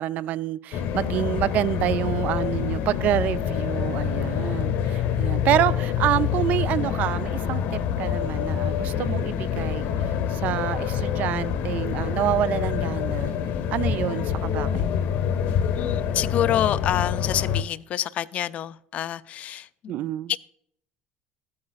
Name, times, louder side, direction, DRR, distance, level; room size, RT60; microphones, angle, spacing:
voice 1, 0.0-13.3 13.7-14.9 19.9-20.3, right 12 dB, 50° right, 0.4 m, -27 dB
sound 1, 0.7-17.6, left 8 dB, 60° left, 1.0 m, -26 dB
voice 2, 15.8-19.7 20.3-20.4, left 11 dB, 40° left, 0.4 m, -27 dB
14.5 x 8.5 x 2.4 m
cardioid pair, 155°, 4 cm